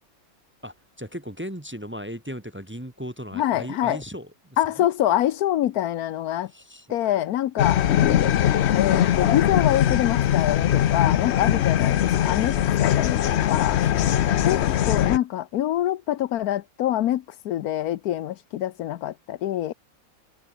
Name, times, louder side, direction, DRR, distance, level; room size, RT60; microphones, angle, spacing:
voice 1, 0.6-4.9 6.5-7.0 12.5-12.9 13.8-14.3, equal, 10° right, 1.1 m, -37 dB
voice 2, 3.3-4.0 4.6-6.5 6.9-7.8 8.7-13.8 14.4-19.7, left 12 dB, 85° left, 1.2 m, -25 dB
sound 1, 7.6-15.2, left 11 dB, 60° left, 0.8 m, -21 dB
open air
omnidirectional pair, 1.5 m